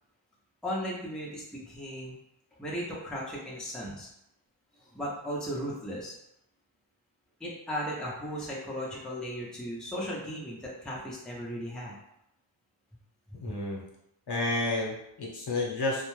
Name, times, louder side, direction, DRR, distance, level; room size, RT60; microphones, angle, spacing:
voice 1, 0.6-2.1 2.6-4.1 4.8-6.2 7.4-12.0 13.5-13.6, equal, ahead, -5 dB, 0.7 m, -36 dB
voice 2, 13.4-13.8 14.3-16.0, left 2 dB, 55° left, -3 dB, 1.0 m, -30 dB
2.3 x 2.2 x 3.1 m, 0.81 s
cardioid pair, 60°, 48 cm